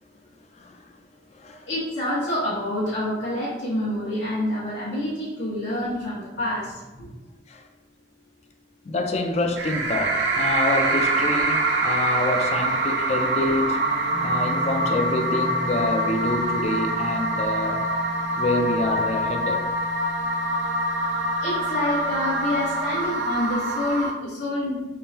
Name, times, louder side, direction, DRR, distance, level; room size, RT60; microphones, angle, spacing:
voice 1, 0.5-0.9 1.3-1.7 7.5-7.7 8.8-13.8 14.2-17.9 18.4-19.7, left 2 dB, 35° left, 0.4 m, -27 dB
voice 2, 1.7-6.7 21.4-24.9, left 1 dB, 85° left, 1.2 m, -27 dB
sound 1, 9.6-24.1, right 2 dB, 85° right, 0.5 m, -25 dB
sound 2, 13.0-16.9, left 1 dB, 55° left, 1.2 m, -42 dB
sound 3, 14.1-23.1, equal, 35° right, 0.7 m, -37 dB
3.6 x 3.3 x 2.8 m
head